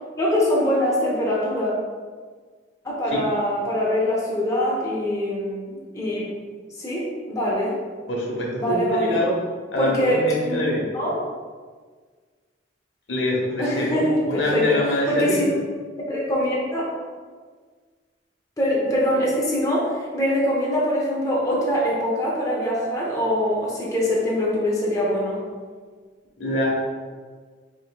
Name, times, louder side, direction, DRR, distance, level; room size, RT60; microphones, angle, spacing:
voice 1, 0.2-1.7 2.8-6.3 6.8-7.7 8.6-9.2 9.8-10.6 10.9-11.1 13.6-14.7 15.1-15.4 16.1-16.8 18.6-25.4, equal, 20° left, -5 dB, 0.7 m, -23 dB
voice 2, 8.1-9.4 9.7-10.9 13.1-15.4 26.4-26.7, left 1 dB, 75° left, -3 dB, 1.0 m, -24 dB
5.1 x 3.6 x 2.3 m, 1.5 s
head